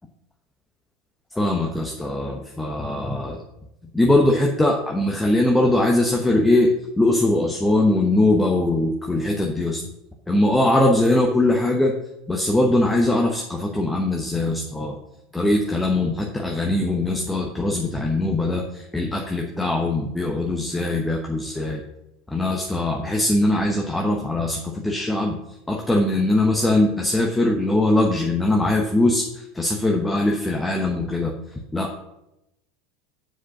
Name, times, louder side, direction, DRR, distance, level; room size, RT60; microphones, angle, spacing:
voice 1, 1.3-3.4 3.9-6.7 7.0-9.8 10.3-11.9 12.3-15.0 15.3-21.8 22.3-25.4 25.7-31.3 31.7-32.0, left 2 dB, 10° left, 0 dB, 1.0 m, -21 dB
8.3 x 5.0 x 6.0 m, 0.87 s
figure-of-eight pair, 75°, 0 cm